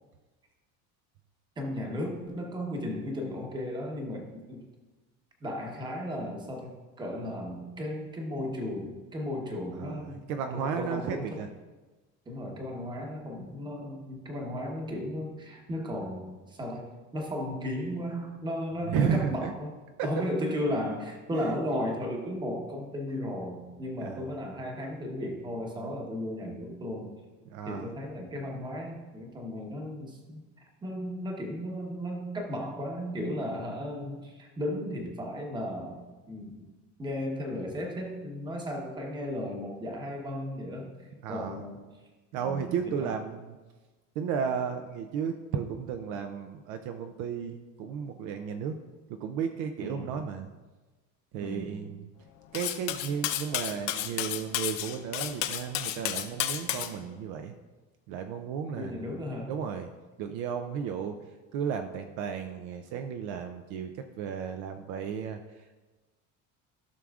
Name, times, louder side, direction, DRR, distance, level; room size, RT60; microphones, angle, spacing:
voice 1, 1.6-4.6 5.4-10.2 10.5-11.3 12.3-19.7 20.0-27.1 27.6-30.4 30.8-36.0 36.3-36.7 37.0-40.9 41.3-41.8 42.4-43.1 49.8-50.2 51.4-51.8 58.7-59.5, left 1 dB, 10° right, 1 dB, 1.0 m, -35 dB
voice 2, 9.7-11.5 18.9-19.5 20.0-20.1 21.3-21.5 24.0-24.3 25.7-26.0 27.5-27.9 41.2-41.6 42.3-43.6 44.2-48.8 49.1-50.5 51.3-52.1 52.5-57.5 58.1-59.1 59.5-59.9 60.2-61.2 61.5-65.8, right 7 dB, 55° right, 6 dB, 0.5 m, -34 dB
Cutlery silverware, 52.5-56.9, left 12 dB, 80° left, 0.8 m, -32 dB
15.0 x 6.2 x 2.4 m, 1.2 s
cardioid pair, 170°, 36 cm